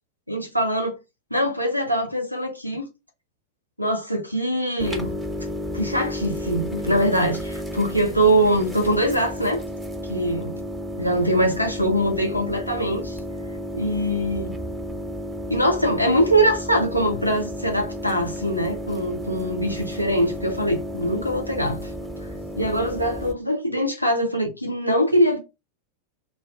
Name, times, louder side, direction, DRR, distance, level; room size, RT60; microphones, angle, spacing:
voice 1, 0.3-1.0 1.3-2.9 3.8-5.2 5.7-9.6 10.1-10.5 11.0-13.2 13.7-14.5 15.5-21.9 22.6-25.4, right 1 dB, 90° right, 0.5 m, -23 dB
sound 1, 4.8-23.3, equal, 5° right, 0.6 m, -32 dB
2.2 x 2.2 x 3.4 m
figure-of-eight pair, 90°, 0 cm